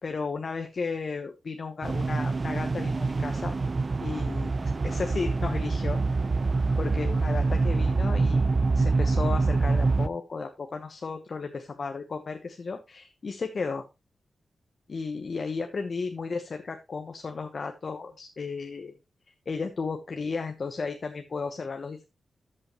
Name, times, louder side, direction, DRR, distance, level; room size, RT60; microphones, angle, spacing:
voice 1, 0.0-3.5 4.0-4.5 4.8-6.0 6.8-8.5 8.7-13.8 14.9-18.9 19.3-22.0, left 4 dB, 55° left, 6 dB, 1.0 m, -34 dB
sound 1, 1.8-10.1, right 3 dB, 40° right, 0.4 m, -25 dB
13.5 x 5.6 x 3.0 m, 0.24 s
wide cardioid pair, 90°, 0 cm